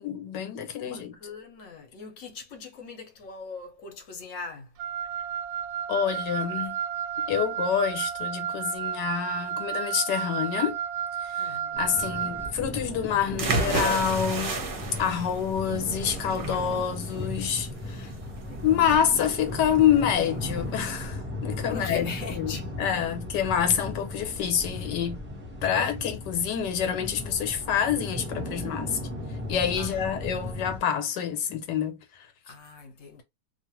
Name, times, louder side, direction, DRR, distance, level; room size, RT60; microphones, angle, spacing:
voice 1, 0.0-1.2 5.9-6.8 7.3-10.8 11.2-18.1 18.6-25.2 25.6-29.0 29.5-32.3, left 8 dB, 85° left, 1.4 m, -27 dB
voice 2, 0.8-4.7 11.4-12.1 18.2-18.8 21.7-22.6 29.8-30.1 32.5-33.2, left 4 dB, 55° left, 1.0 m, -41 dB
Wind instrument woodwind instrument, 4.8-12.6, right 9 dB, 70° right, 0.9 m, -32 dB
sound 1, 11.7-30.8, left 1 dB, 10° right, 0.9 m, -36 dB
sound 2, 13.4-21.1, right 3 dB, 45° right, 0.7 m, -32 dB
2.8 x 2.5 x 2.9 m
omnidirectional pair, 1.8 m